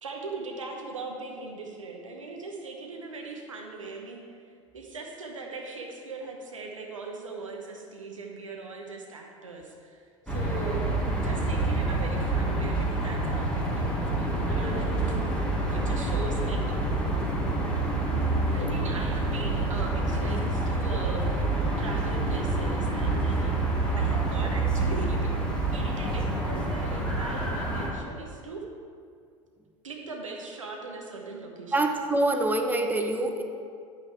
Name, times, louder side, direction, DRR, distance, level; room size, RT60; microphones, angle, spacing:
voice 1, 0.0-10.9 11.2-15.2 15.7-16.8 18.5-23.7 24.0-25.3 25.7-28.7 29.8-31.9, right 3 dB, 80° right, 1 dB, 1.1 m, -40 dB
sound 1, 10.3-27.9, right 2 dB, 5° left, 1.9 m, -27 dB
voice 2, 31.7-33.4, right 2 dB, 10° right, 4 dB, 0.9 m, -25 dB
9.7 x 8.7 x 3.7 m, 2.2 s
figure-of-eight pair, 75°, 16 cm